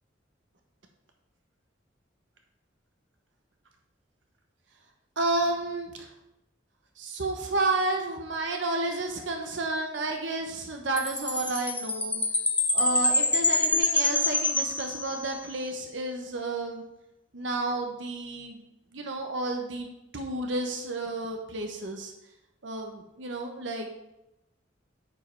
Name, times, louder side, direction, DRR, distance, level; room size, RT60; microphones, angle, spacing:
voice 1, 5.2-5.9 7.0-12.2 12.7-16.8 17.3-18.6 18.9-19.9 20.1-22.1 22.6-23.9, right 2 dB, 75° right, 3 dB, 1.1 m, -31 dB
Chime, 11.0-15.5, left 2 dB, 10° left, 0.4 m, -26 dB
9.3 x 5.3 x 4.6 m, 0.92 s
head